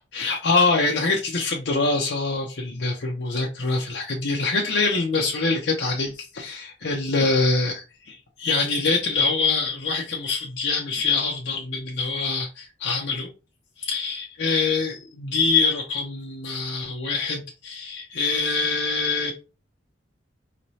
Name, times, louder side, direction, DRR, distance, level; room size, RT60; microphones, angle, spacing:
voice 1, 0.0-13.3 13.8-19.3, left 3 dB, 70° left, 0.7 m, -24 dB
4.9 x 3.1 x 2.7 m
head